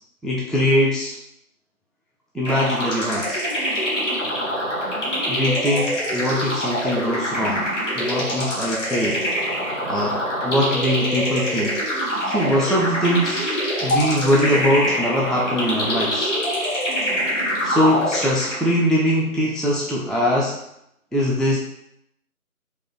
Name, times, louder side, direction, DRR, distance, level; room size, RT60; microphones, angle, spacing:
voice 1, 0.2-1.2 2.3-3.5 5.3-7.7 7.9-9.3 9.9-11.8 12.3-16.3 17.6-20.6 21.1-21.6, equal, ahead, -5 dB, 0.4 m, -22 dB
sound 1, 2.4-18.8, equal, 55° left, 1.4 m, -25 dB
3.7 x 2.8 x 3.8 m, 0.77 s
figure-of-eight pair, 170°, 44 cm